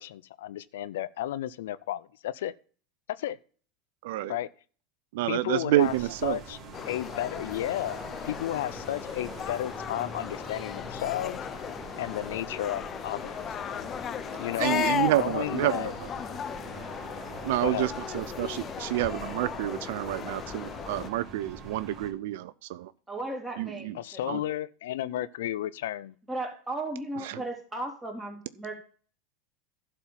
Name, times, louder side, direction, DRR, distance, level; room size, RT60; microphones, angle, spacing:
voice 1, 0.0-2.5 3.2-3.4 4.3-4.5 5.2-5.9 6.2-6.6 6.8-11.4 12.0-13.4 14.4-14.9 15.2-15.9 17.6-17.9 23.9-26.2, left 13 dB, 80° left, 0.4 m, -33 dB
voice 2, 4.0-4.3 5.1-6.4 14.6-15.9 17.4-22.9 23.6-23.9 24.3-24.4 27.2-27.4, right 14 dB, 70° right, 0.4 m, -28 dB
sound 1, 5.8-22.1, right 3 dB, 35° right, 2.7 m, -44 dB
sound 2, 6.7-21.1, left 9 dB, 35° left, 0.6 m, -36 dB
voice 3, 23.1-24.4 25.0-25.2 26.3-28.8, right 2 dB, 10° right, 3.5 m, -36 dB
11.5 x 4.4 x 7.3 m
hypercardioid pair, 100°, 0 cm